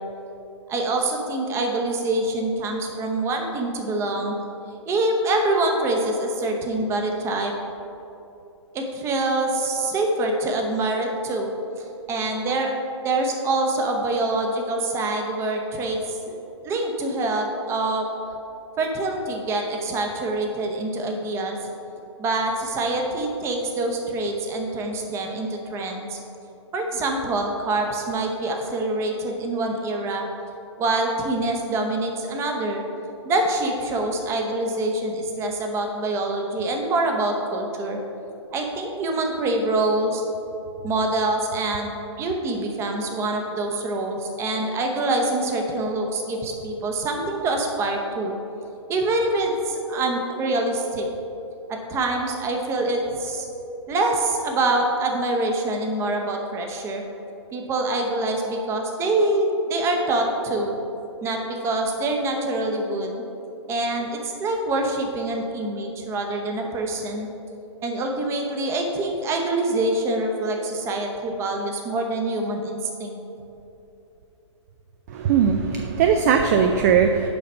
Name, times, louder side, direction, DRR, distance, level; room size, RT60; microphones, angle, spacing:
voice 1, 0.7-4.3 4.9-7.5 8.7-11.5 11.8-12.7 13.0-16.3 16.6-18.1 18.8-21.6 22.2-26.2 26.7-30.3 30.8-32.8 33.2-38.0 38.5-40.2 40.8-41.9 42.2-48.4 48.9-51.1 51.7-53.5 53.9-57.0 57.5-60.7 61.2-63.2 63.7-67.3 67.8-73.2, right 2 dB, 15° right, 2 dB, 0.8 m, -25 dB
voice 2, 75.1-77.3, right 7 dB, 35° right, 5 dB, 0.4 m, -19 dB
7.0 x 5.0 x 5.3 m, 2.9 s
hypercardioid pair, 135°, 16 cm